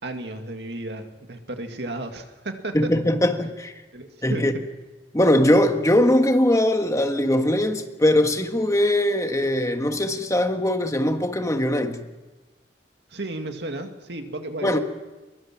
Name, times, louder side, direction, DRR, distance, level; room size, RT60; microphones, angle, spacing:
voice 1, 0.0-2.9 3.9-4.7 13.1-14.8, right 2 dB, 75° right, 2.2 m, -33 dB
voice 2, 2.7-3.7 4.2-4.5 5.1-12.0 14.6-14.8, left 1 dB, 20° left, 1.5 m, -21 dB
23.0 x 22.5 x 6.1 m
head